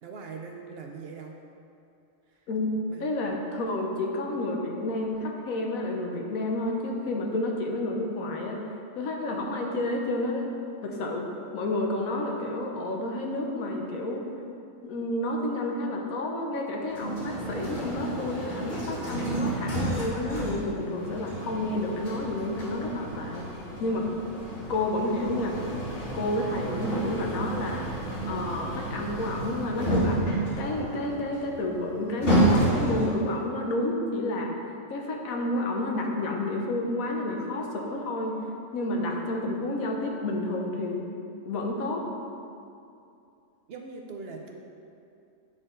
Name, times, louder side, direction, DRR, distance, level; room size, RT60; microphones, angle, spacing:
voice 1, 0.0-1.4 2.3-2.5 2.9-3.1 26.7-27.1 38.9-39.3 43.7-44.6, right 4 dB, 60° right, 2 dB, 0.7 m, -42 dB
voice 2, 2.5-8.6 8.9-10.5 10.8-11.3 11.5-14.2 14.8-23.4 23.8-24.1 24.7-25.6 26.1-30.2 30.6-34.5 34.9-38.4 38.7-41.1 41.5-42.0, left 1 dB, 80° left, 1 dB, 1.3 m, -30 dB
sound 1, 16.9-33.3, right 1 dB, 45° left, 1.5 m, -30 dB
8.7 x 4.3 x 3.8 m, 2.6 s
omnidirectional pair, 1.4 m